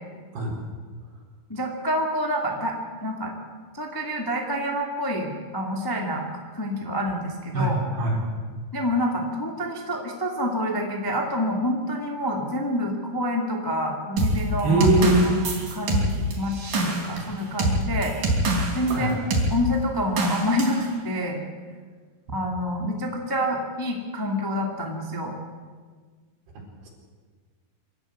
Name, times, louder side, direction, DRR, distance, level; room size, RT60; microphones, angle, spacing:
voice 1, 1.5-2.7 3.0-3.3 3.7-6.3 6.5-7.8 8.7-14.9 15.2-18.1 18.7-19.1 19.5-21.4 22.3-25.3, equal, 10° left, 1 dB, 1.2 m, -27 dB
voice 2, 7.5-8.2 14.6-15.3 18.9-19.2 22.3-22.4, right 2 dB, 85° right, -1 dB, 6.2 m, -21 dB
sound 1, 14.2-19.0 19.3-19.5 20.2-20.8, right 2 dB, 60° right, 5.1 m, -24 dB
26.0 x 13.0 x 8.2 m, 1.5 s
omnidirectional pair, 4.6 m